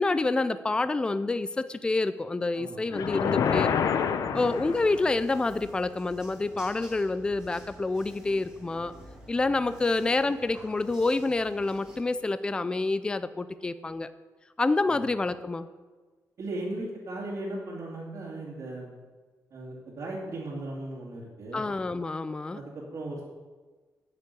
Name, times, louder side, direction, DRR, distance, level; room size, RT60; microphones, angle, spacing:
voice 1, 0.0-3.7 4.3-8.9 9.3-14.1 14.6-15.7 21.5-22.6, left 3 dB, 15° left, 13 dB, 0.4 m, -28 dB
sound 1, 2.9-5.2, left 7 dB, 65° left, 0.7 m, -27 dB
sound 2, 4.3-12.0, equal, 10° right, 2.2 m, -50 dB
voice 2, 16.4-18.9 19.5-21.6 22.5-23.2, right 2 dB, 50° right, -6 dB, 2.5 m, -37 dB
8.3 x 6.6 x 8.4 m, 1.3 s
wide cardioid pair, 150°, 6 cm